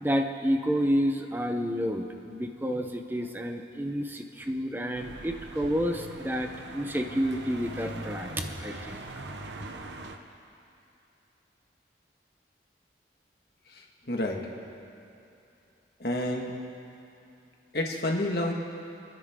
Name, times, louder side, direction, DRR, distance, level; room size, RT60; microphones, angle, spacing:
voice 1, 0.0-9.0, equal, 10° right, 4 dB, 0.9 m, -29 dB
sound 1, 4.9-10.2, right 2 dB, 80° right, 1.1 m, -42 dB
voice 2, 13.7-14.5 16.0-16.6 17.7-18.5, left 1 dB, 60° left, 0 dB, 1.9 m, -30 dB
30.0 x 10.0 x 3.8 m, 2.8 s
head